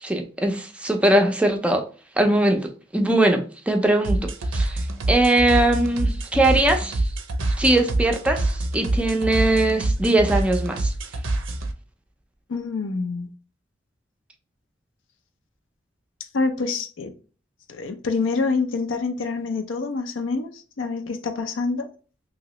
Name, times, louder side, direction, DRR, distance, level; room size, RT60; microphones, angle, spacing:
voice 1, 0.0-1.8 2.2-4.8 5.1-7.0 7.6-10.9, right 1 dB, 5° right, 0.4 m, -21 dB
sound 1, 4.0-11.7, right 2 dB, 80° right, 0.5 m, -25 dB
voice 2, 12.5-13.3 16.3-17.1 17.7-20.5 20.8-21.9, left 4 dB, 75° left, 0.5 m, -26 dB
3.0 x 2.8 x 2.9 m
head